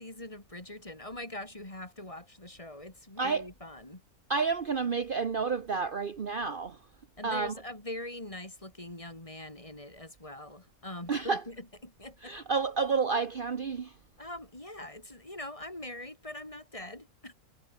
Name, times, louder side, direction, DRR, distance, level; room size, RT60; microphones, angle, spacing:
voice 1, 0.0-4.0 7.2-12.3 14.2-17.3, left 1 dB, 25° left, 3.4 m, -43 dB
voice 2, 3.2-3.5 4.3-6.9 7.2-7.6 11.1-11.4 12.2-14.0, right 5 dB, 45° right, 1.0 m, -30 dB
omnidirectional pair, 1.5 m